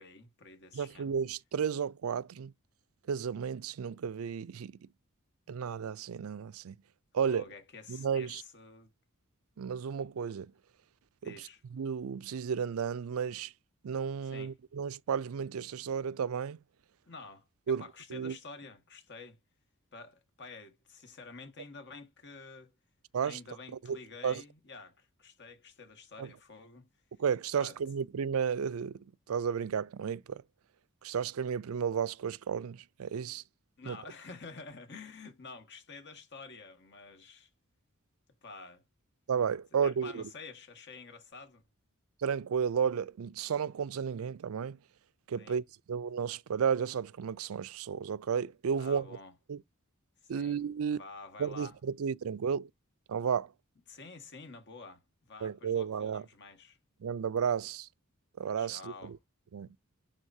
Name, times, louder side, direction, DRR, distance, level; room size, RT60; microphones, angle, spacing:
voice 1, 0.0-1.1 7.2-8.9 11.2-11.6 14.2-14.5 17.1-19.4 19.9-22.7 23.2-26.9 27.5-27.8 33.8-37.5 38.4-38.8 39.8-41.6 45.4-45.6 48.8-49.3 50.3-50.6 50.9-51.8 53.9-55.0 55.3-56.8 58.6-59.1, left 4 dB, 55° left, 1.7 m, -49 dB
voice 2, 0.7-2.5 3.1-4.8 5.5-6.8 7.1-7.4 7.9-8.4 9.6-10.5 11.3-11.4 11.7-13.5 13.8-16.6 17.7-17.8 18.1-18.4 23.1-23.4 23.9-24.4 26.2-26.3 27.2-28.9 29.3-30.4 31.0-33.4 33.9-34.0 39.3-40.2 42.2-44.8 45.3-49.1 49.5-49.6 50.3-51.0 51.4-52.7 53.1-53.5 55.4-56.3 57.0-57.9 58.4-59.1 59.5-59.7, right 7 dB, 75° right, 0.4 m, -33 dB
11.0 x 3.9 x 2.7 m
head